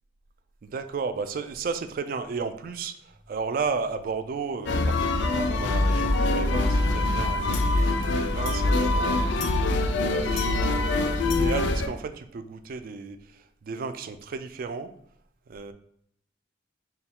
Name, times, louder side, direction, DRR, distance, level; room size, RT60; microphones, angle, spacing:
voice 1, 0.6-9.5 10.0-14.9 15.5-15.7, right 5 dB, 50° right, 10 dB, 0.3 m, -34 dB
sound 1, 3.1-4.3 5.8-8.4 8.9-9.0 12.0-12.2, equal, 80° right, 1.2 m, -33 dB
sound 2, 4.7-11.9, left 2 dB, 85° left, 0.4 m, -24 dB
4.3 x 2.2 x 3.6 m, 0.71 s
head